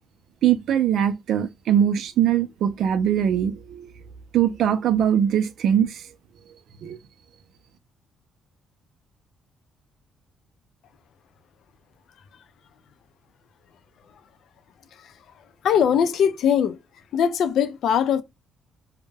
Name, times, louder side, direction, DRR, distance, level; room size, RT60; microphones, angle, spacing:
voice 1, 0.4-3.9 4.3-6.0 6.8-7.0, right 9 dB, 75° right, 0.4 m, -21 dB
voice 2, 15.6-16.8 17.1-18.2, left 8 dB, 70° left, 0.3 m, -21 dB
2.1 x 2.0 x 3.2 m
cardioid pair, 90°, 0 cm